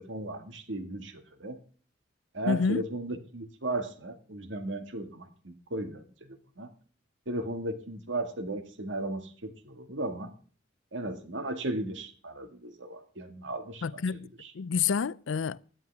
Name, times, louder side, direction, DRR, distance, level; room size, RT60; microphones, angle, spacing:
voice 1, 0.0-1.6 2.3-6.7 7.3-10.3 10.9-14.0 14.4-14.5, right 2 dB, 75° right, 2.1 m, -36 dB
voice 2, 2.5-2.9 13.8-14.3 14.5-15.6, left 5 dB, 85° left, 0.5 m, -28 dB
17.0 x 11.0 x 3.6 m
head